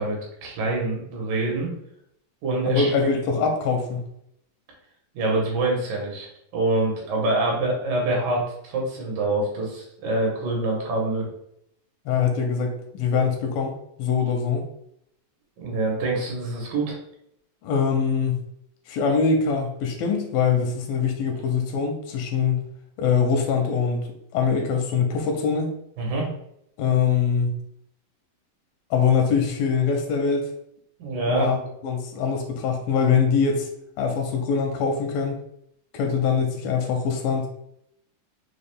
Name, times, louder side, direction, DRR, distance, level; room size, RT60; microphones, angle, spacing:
voice 1, 0.0-1.7 2.4-2.9 5.1-6.3 6.5-11.3 15.6-17.0 26.0-26.3 31.0-31.5, right 2 dB, 70° right, -2 dB, 2.9 m, -25 dB
voice 2, 2.7-4.0 12.1-14.7 17.6-18.4 18.9-22.7 23.0-25.7 26.8-27.6 28.9-30.5 31.2-31.6 31.8-33.7 34.0-35.4 35.9-37.5, left 6 dB, 85° left, 3 dB, 2.4 m, -23 dB
6.4 x 2.3 x 3.4 m, 0.74 s
omnidirectional pair, 4.3 m